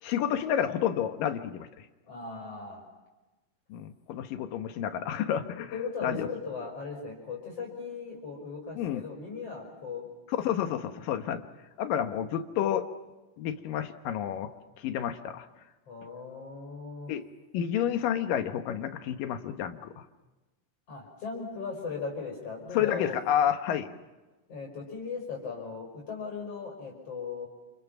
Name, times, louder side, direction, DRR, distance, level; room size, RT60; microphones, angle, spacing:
voice 1, 0.0-1.7 3.7-5.7 6.0-6.3 8.8-9.0 10.4-11.4 11.8-12.9 13.4-14.5 14.8-15.5 17.1-17.3 17.5-20.0 22.7-23.9, left 9 dB, 85° left, 8 dB, 2.9 m, -30 dB
voice 2, 2.1-2.8 5.7-10.1 10.7-10.9 15.9-17.1 20.9-23.2 24.5-27.5, left 5 dB, 45° left, -2 dB, 6.2 m, -38 dB
28.5 x 28.5 x 6.0 m, 1.1 s
omnidirectional pair, 3.9 m